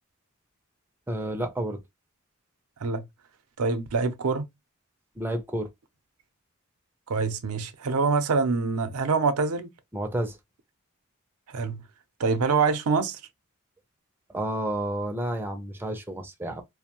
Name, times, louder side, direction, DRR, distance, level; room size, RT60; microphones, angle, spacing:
voice 1, 1.1-1.8 5.2-5.7 9.9-10.4 14.3-16.6, right 1 dB, 10° right, 0.4 m, -30 dB
voice 2, 3.6-4.5 7.1-9.7 11.5-11.8 12.2-13.2, right 4 dB, 90° right, 0.5 m, -25 dB
2.6 x 2.1 x 2.8 m
head